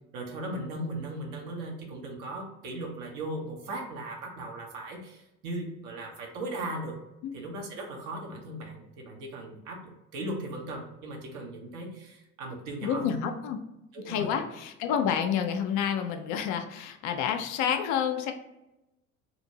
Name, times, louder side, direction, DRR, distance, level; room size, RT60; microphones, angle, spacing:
voice 1, 0.1-7.0 7.3-13.2 13.9-14.3, right 1 dB, 55° right, 1 dB, 0.9 m, -38 dB
voice 2, 12.8-13.6 14.1-18.3, left 8 dB, 50° left, 6 dB, 0.5 m, -29 dB
2.8 x 2.5 x 2.8 m, 0.93 s
figure-of-eight pair, 60°, 38 cm